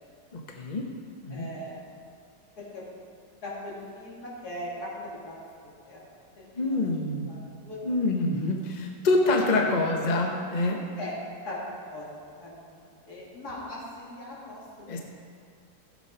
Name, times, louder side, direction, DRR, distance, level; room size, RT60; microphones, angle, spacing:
voice 1, 0.3-0.9 1.2-1.5 6.6-7.4 7.8-10.8 14.9-15.0, left 2 dB, 30° left, 1 dB, 0.9 m, -26 dB
voice 2, 1.3-1.8 2.6-2.8 3.4-5.4 5.8-6.0 6.4-6.9 7.3-7.4 7.6-8.0 9.5-9.6 11.0-11.1 11.5-12.0 12.4-14.9, left 1 dB, 65° left, -6 dB, 3.4 m, -40 dB
14.5 x 7.6 x 5.6 m, 2.3 s
omnidirectional pair, 1.8 m